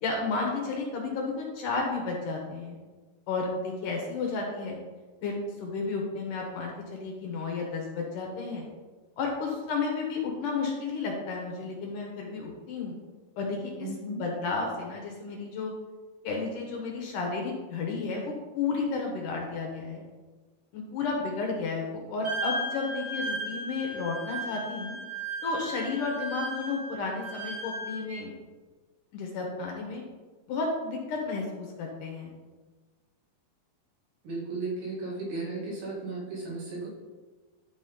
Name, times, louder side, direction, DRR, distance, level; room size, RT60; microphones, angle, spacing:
voice 1, 0.0-2.8 3.3-4.8 5.2-8.7 9.2-13.0 13.4-15.7 16.2-20.0 20.7-25.0 25.4-28.3 29.1-30.0 30.5-32.3, left 4 dB, 65° left, 0 dB, 2.5 m, -32 dB
voice 2, 13.8-14.2 34.2-36.9, right 3 dB, 85° right, -4 dB, 4.5 m, -35 dB
Wind instrument woodwind instrument, 22.2-28.2, right 1 dB, 30° right, 1.6 m, -36 dB
11.5 x 4.1 x 5.4 m, 1.3 s
omnidirectional pair, 4.6 m